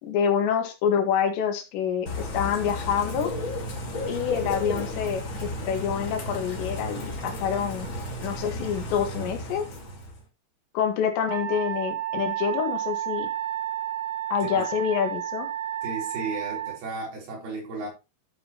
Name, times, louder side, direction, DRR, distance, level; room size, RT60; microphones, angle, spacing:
voice 1, 0.0-3.3 4.1-7.9 8.2-9.7 10.7-13.3 14.3-15.5, left 8 dB, 80° left, 3.8 m, -27 dB
Bird / Rain, 2.1-10.2, left 1 dB, 35° left, 2.1 m, -33 dB
Wind instrument woodwind instrument, 11.2-16.8, right 12 dB, 30° right, 5.0 m, -31 dB
voice 2, 15.8-17.9, right 3 dB, 60° right, 5.4 m, -34 dB
12.0 x 7.7 x 2.9 m
omnidirectional pair, 5.0 m